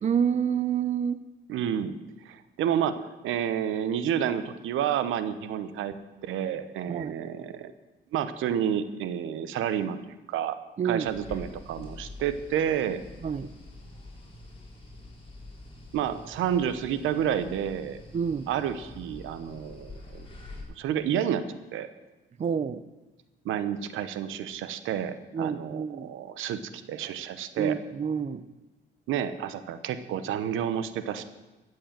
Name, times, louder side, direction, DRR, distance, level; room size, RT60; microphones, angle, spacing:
voice 1, 0.0-1.2 6.9-7.2 10.8-11.1 13.2-13.5 18.1-18.5 22.4-22.8 25.3-26.1 27.6-28.5, right 7 dB, 35° right, 15 dB, 0.6 m, -28 dB
voice 2, 1.5-2.0 2.2-7.7 8.1-10.0 10.3-10.6 10.8-13.0 15.9-18.0 18.5-20.2 20.8-21.9 23.4-27.8 29.1-31.2, right 9 dB, 85° right, 12 dB, 1.0 m, -30 dB
sound 1, 11.0-20.6, left 2 dB, 30° left, 4.1 m, -46 dB
14.0 x 7.8 x 7.4 m, 1.1 s
cardioid pair, 90°, 20 cm